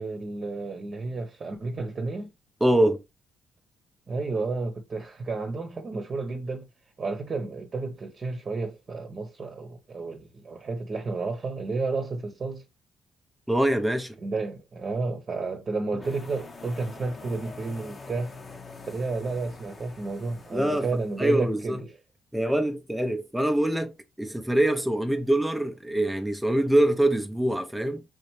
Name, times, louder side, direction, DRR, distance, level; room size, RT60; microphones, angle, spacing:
voice 1, 0.0-2.3 4.1-6.7 7.0-12.6 14.2-18.3 18.9-22.0, right 3 dB, 40° right, 1.0 m, -31 dB
voice 2, 2.6-3.0 13.5-14.1 20.5-20.9 21.2-21.8 22.3-28.0, right 1 dB, 5° right, 0.7 m, -24 dB
sound 1, 16.0-21.5, left 4 dB, 35° left, 1.0 m, -45 dB
3.9 x 3.1 x 3.2 m
cardioid pair, 80°, 0 cm